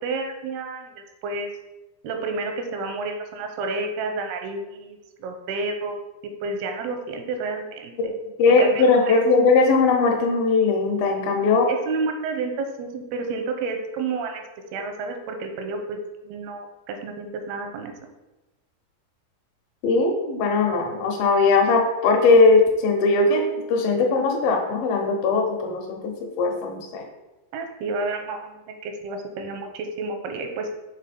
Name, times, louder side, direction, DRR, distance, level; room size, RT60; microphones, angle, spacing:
voice 1, 0.0-0.9 1.2-1.5 2.0-6.0 6.4-8.1 8.5-9.2 11.7-14.4 14.7-16.0 16.2-17.9 27.5-30.7, right 3 dB, 85° right, 4 dB, 2.7 m, -30 dB
voice 2, 8.4-11.7 19.8-23.4 23.7-27.0, left 3 dB, 75° left, 2 dB, 2.4 m, -19 dB
6.8 x 3.7 x 4.1 m, 1.0 s
omnidirectional pair, 4.5 m